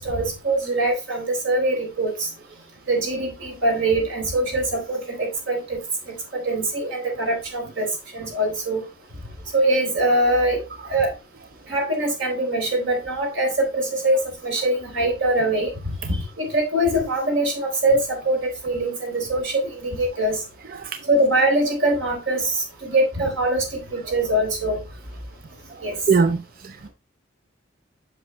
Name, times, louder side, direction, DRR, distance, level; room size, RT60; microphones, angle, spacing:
voice 1, 0.0-2.3 2.9-5.8 6.3-7.9 8.1-8.8 9.5-10.6 10.9-11.1 11.7-20.4 21.1-24.8 25.8-26.0, right 1 dB, 80° right, 1 dB, 3.9 m, -23 dB
voice 2, 25.7-26.9, right 5 dB, 45° right, 9 dB, 0.4 m, -23 dB
7.9 x 5.9 x 3.2 m, 0.29 s
head